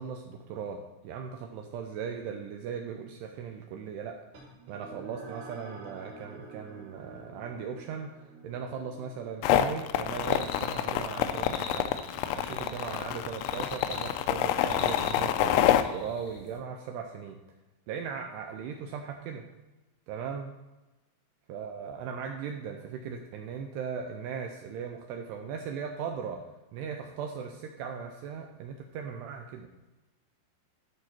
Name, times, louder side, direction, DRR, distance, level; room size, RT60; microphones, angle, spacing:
voice 1, 0.0-4.2 4.7-11.9 12.3-17.4 17.9-19.5 20.1-20.5 21.5-26.5 26.7-29.7, right 6 dB, 80° right, 4 dB, 2.4 m, -38 dB
sound 1, 4.3-13.2, right 3 dB, 60° right, 3.9 m, -50 dB
sound 2, 9.4-15.8, left 12 dB, 85° left, 2.7 m, -27 dB
sound 3, 10.2-16.6, left 4 dB, 65° left, 2.0 m, -45 dB
12.5 x 5.0 x 4.3 m, 1.1 s
omnidirectional pair, 5.3 m